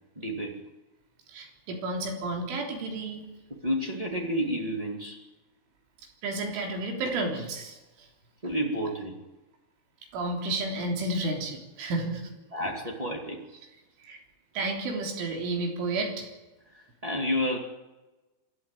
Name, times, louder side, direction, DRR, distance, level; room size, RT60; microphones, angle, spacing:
voice 1, 0.1-0.6 3.5-5.2 8.4-9.2 12.5-13.4 16.7-17.6, equal, 45° right, 0 dB, 0.4 m, -30 dB
voice 2, 1.3-3.2 6.2-8.1 10.1-12.2 14.0-14.2 14.6-16.3, right 2 dB, 80° right, 2 dB, 6.1 m, -31 dB
25.5 x 13.0 x 9.1 m, 1.1 s
omnidirectional pair, 5.5 m